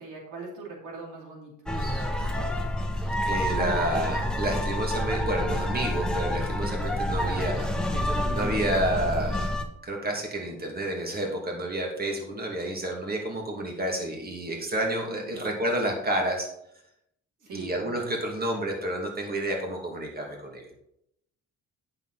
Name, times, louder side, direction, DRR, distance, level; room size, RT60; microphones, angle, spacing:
voice 1, 0.0-1.5 7.2-7.6 15.1-15.5 17.4-17.7, right 4 dB, 85° right, -2 dB, 2.7 m, -41 dB
sound 1, 1.7-9.6, left 1 dB, 5° left, 1.2 m, -28 dB
voice 2, 1.7-2.3 3.2-7.7 7.9-9.6 9.8-16.5 17.5-20.7, right 1 dB, 30° right, 1 dB, 2.5 m, -30 dB
9.1 x 7.0 x 4.2 m, 0.77 s
cardioid pair, 90°, 30 cm